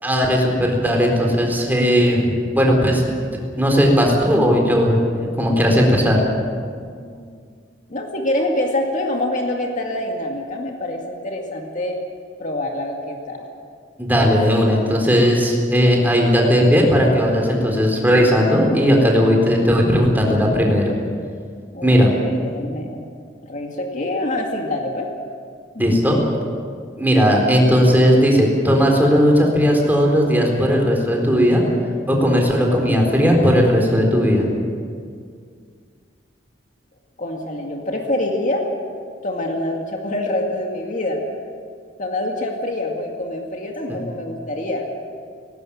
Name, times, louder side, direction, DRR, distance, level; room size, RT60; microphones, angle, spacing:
voice 1, 0.0-2.2 2.5-3.0 3.6-6.2 14.0-20.9 21.8-22.1 25.8-26.2 27.0-31.6 32.1-34.5 43.9-44.0, equal, 10° right, 0 dB, 4.2 m, -16 dB
voice 2, 7.0-7.4 7.9-12.0 12.4-13.5 21.7-23.0 23.4-25.1 25.7-26.0 37.2-38.7 39.2-41.2 42.0-44.9, left 1 dB, 45° left, 1 dB, 2.2 m, -25 dB
19.0 x 17.5 x 8.8 m, 2.1 s
head